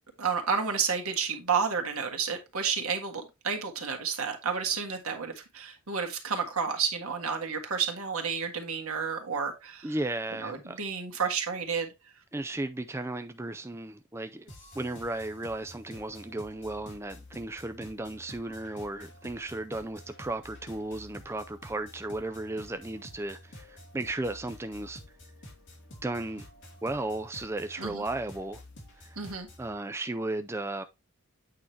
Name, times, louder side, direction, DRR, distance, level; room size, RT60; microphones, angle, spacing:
voice 1, 0.2-9.9 10.4-11.9 27.8-28.0 29.2-29.5, right 6 dB, 85° right, 1.6 m, -31 dB
voice 2, 9.8-10.8 12.3-25.0 26.0-26.5 26.8-28.6 29.0-29.2 29.6-30.8, right 2 dB, 10° right, 0.3 m, -35 dB
sound 1, 14.5-29.7, left 1 dB, 55° left, 3.0 m, -50 dB
8.5 x 4.8 x 3.2 m
head